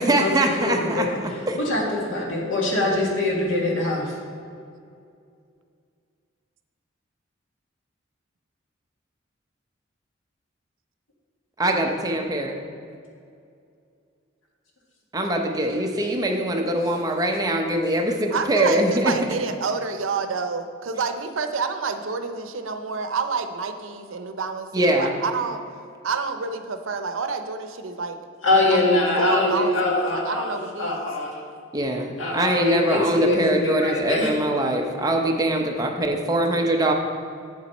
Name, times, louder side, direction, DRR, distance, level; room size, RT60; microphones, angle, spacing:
voice 1, 0.0-1.6 11.6-12.6 15.1-19.1 24.7-25.1 31.7-36.9, right 1 dB, 20° right, 2 dB, 0.7 m, -23 dB
voice 2, 0.6-1.2 1.7-4.0 28.4-31.3 32.2-34.3, left 2 dB, 80° left, -2 dB, 1.8 m, -23 dB
voice 3, 18.3-25.6 26.0-28.2 28.7-28.8 29.2-31.1, right 4 dB, 90° right, 8 dB, 0.6 m, -28 dB
7.8 x 7.4 x 4.1 m, 2.4 s
head